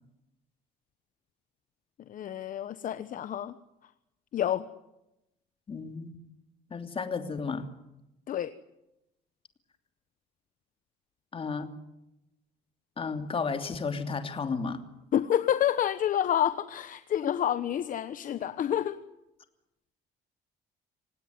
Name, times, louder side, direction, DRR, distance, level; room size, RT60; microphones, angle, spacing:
voice 1, 2.1-3.6 4.3-4.7 8.3-8.5 15.1-19.0, left 10 dB, 50° left, 12 dB, 1.1 m, -28 dB
voice 2, 5.7-6.1 6.7-7.7 11.3-11.7 13.0-14.8, left 4 dB, 35° left, 7 dB, 2.9 m, -33 dB
26.5 x 18.0 x 9.5 m, 0.91 s
cardioid pair, 110°, 17 cm